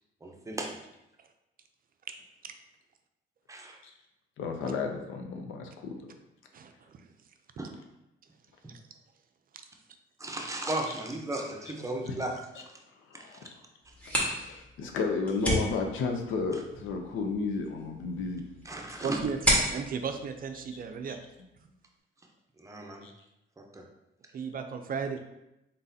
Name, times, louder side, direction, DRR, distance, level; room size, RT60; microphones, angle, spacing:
voice 1, 0.2-0.8 3.5-3.8 7.6-7.7 10.2-12.3 13.1-13.2 18.7-19.2 22.6-23.0 23.6-23.8, right 2 dB, 15° right, 1 dB, 0.7 m, -35 dB
voice 2, 4.4-6.1 10.9-11.0 11.7-11.8 12.0-12.2 12.5-12.6 12.9-13.6 14.0-18.4 21.1-21.2 23.0-23.1, left 4 dB, 85° left, 3 dB, 0.7 m, -33 dB
sound 1, 13.8-21.4, right 1 dB, 5° left, 1.4 m, -33 dB
voice 3, 19.0-19.4 19.7-21.2 24.3-25.2, right 6 dB, 45° right, 6 dB, 0.5 m, -34 dB
3.9 x 3.9 x 2.7 m, 0.88 s
cardioid pair, 90°, 20 cm